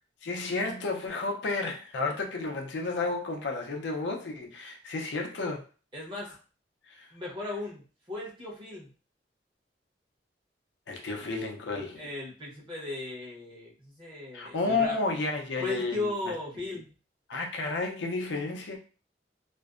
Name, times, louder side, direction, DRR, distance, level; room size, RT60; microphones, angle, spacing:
voice 1, 0.2-5.6 6.9-7.1 10.9-12.0 14.3-16.3 17.3-18.8, left 3 dB, 75° left, 0.5 m, -32 dB
voice 2, 5.9-6.3 7.1-8.9 12.0-15.0 15.6-16.9, left 2 dB, 25° right, 0.9 m, -36 dB
2.5 x 2.1 x 2.4 m
head